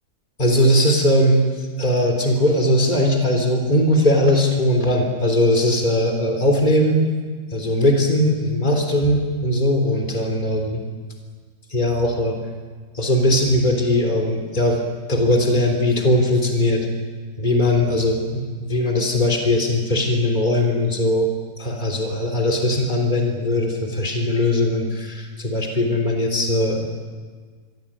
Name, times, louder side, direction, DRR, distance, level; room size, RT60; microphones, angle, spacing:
voice 1, 0.4-1.4 1.8-7.0 7.5-10.8 11.7-12.4 12.9-14.8 15.1-16.9 17.4-21.3 21.6-26.9, left 1 dB, 25° left, 3 dB, 3.7 m, -19 dB
27.0 x 22.5 x 8.9 m, 1.5 s
omnidirectional pair, 1.9 m